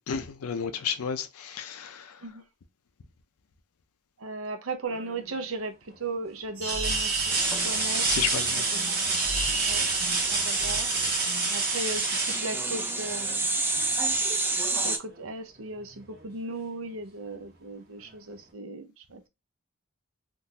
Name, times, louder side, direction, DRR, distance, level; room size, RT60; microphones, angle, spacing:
voice 1, 0.0-2.2 8.1-8.7 9.5-9.6, left 7 dB, 80° left, 0.5 m, -32 dB
voice 2, 4.2-5.7 6.0-9.9 10.3-10.9 11.5-13.6 14.8-19.3, right 2 dB, 65° right, 0.6 m, -37 dB
sound 1, 4.9-5.3 5.9-6.0 6.6-13.3 15.1-15.2 15.7-16.7 18.0-18.1, right 4 dB, 45° right, 0.9 m, -30 dB
sound 2, 6.5-11.5, right 3 dB, 90° right, 1.3 m, -35 dB
sound 3, 7.3-15.0, right 2 dB, 10° right, 0.4 m, -30 dB
3.7 x 2.5 x 2.7 m
head